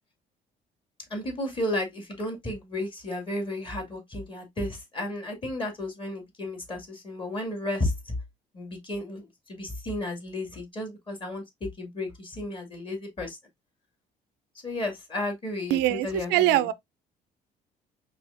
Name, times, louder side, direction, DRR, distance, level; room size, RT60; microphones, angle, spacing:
voice 1, 1.1-8.2 8.5-13.4 14.6-16.7, left 1 dB, 30° left, 2.2 m, -33 dB
voice 2, 15.7-16.7, right 15 dB, 90° right, 0.4 m, -23 dB
4.8 x 3.5 x 2.5 m
cardioid pair, 110°, 17 cm